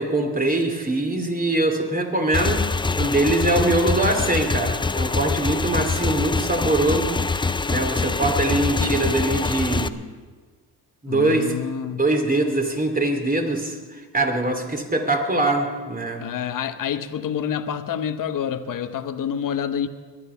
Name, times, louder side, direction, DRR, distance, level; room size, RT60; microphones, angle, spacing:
voice 1, 0.0-7.1 7.4-9.9 11.0-11.6 12.0-13.8 14.1-16.2, right 2 dB, 20° right, 4 dB, 2.8 m, -23 dB
Motorcycle / Engine, 2.3-9.9, left 4 dB, 10° left, 0.5 m, -24 dB
voice 2, 11.1-12.0 16.2-19.9, left 8 dB, 50° left, 9 dB, 1.0 m, -27 dB
22.5 x 9.4 x 5.7 m, 1.5 s
supercardioid pair, 70°, 42 cm